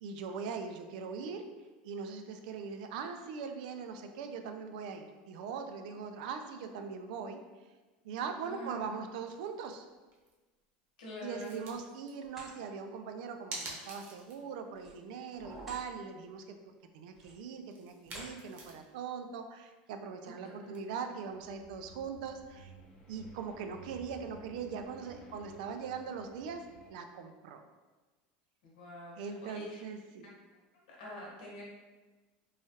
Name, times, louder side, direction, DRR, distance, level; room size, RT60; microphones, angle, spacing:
voice 1, 0.0-1.4 1.8-7.4 8.0-9.8 11.2-16.6 16.9-22.7 23.1-27.6 29.2-30.3, right 6 dB, 75° right, 6 dB, 0.3 m, -41 dB
voice 2, 8.4-8.8 11.0-11.7 28.6-29.8 30.9-31.6, left 1 dB, 85° left, -4 dB, 1.0 m, -45 dB
sound 1, 9.4-9.7 10.1-10.3 11.4-12.1 13.5-14.5 14.8-14.9 15.3-16.0 17.7-19.0 20.7-20.8, right 2 dB, 50° right, 0.8 m, -46 dB
sound 2, 11.2-11.8 12.2-12.6 14.7-15.9 16.3-16.5 17.1-17.6 18.0-18.4, equal, ahead, 0.8 m, -52 dB
sound 3, 21.2-26.9, right 2 dB, 25° left, 0.6 m, -55 dB
3.1 x 2.3 x 2.8 m, 1.2 s
supercardioid pair, 130°, 4 cm